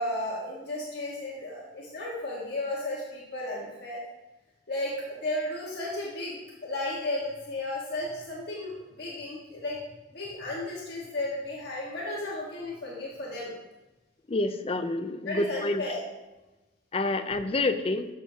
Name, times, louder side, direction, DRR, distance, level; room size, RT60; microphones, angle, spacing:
voice 1, 0.0-4.0 4.7-9.8 10.1-13.5 15.2-16.0, left 1 dB, 60° left, -5 dB, 1.5 m, -34 dB
voice 2, 14.3-15.8 16.9-18.1, left 2 dB, 30° left, 9 dB, 0.5 m, -28 dB
12.5 x 6.4 x 2.8 m, 1.1 s
head